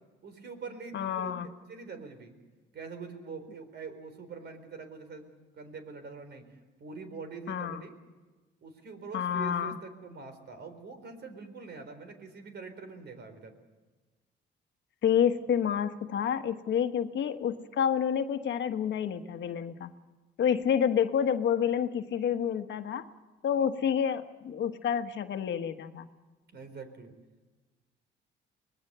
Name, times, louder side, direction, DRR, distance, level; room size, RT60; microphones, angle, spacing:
voice 1, 0.2-2.3 2.7-5.3 5.5-6.5 6.8-8.0 8.6-13.5 26.5-27.1, right 4 dB, 60° right, 8 dB, 4.2 m, -44 dB
voice 2, 0.9-1.5 7.5-7.8 9.1-9.8 15.0-19.9 20.4-23.0 23.4-26.1, left 8 dB, 65° left, 8 dB, 1.3 m, -29 dB
24.5 x 19.5 x 6.9 m, 1.2 s
cardioid pair, 90°, 20 cm